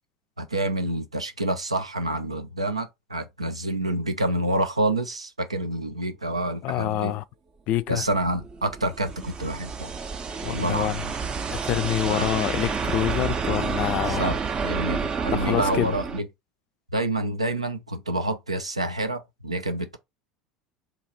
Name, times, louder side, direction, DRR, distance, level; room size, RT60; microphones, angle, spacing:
voice 1, 0.4-7.2 7.9-9.9 10.5-11.1 12.1-12.3 14.0-16.3 16.9-20.0, right 1 dB, 85° right, 0.4 m, -28 dB
voice 2, 6.6-7.2 7.7-8.0 10.4-11.0 11.5-14.4 15.3-15.9, left 13 dB, 50° left, 0.3 m, -26 dB
sound 1, 8.0-16.2, right 5 dB, 30° right, 0.5 m, -29 dB
2.8 x 2.4 x 4.1 m
figure-of-eight pair, 70°, 3 cm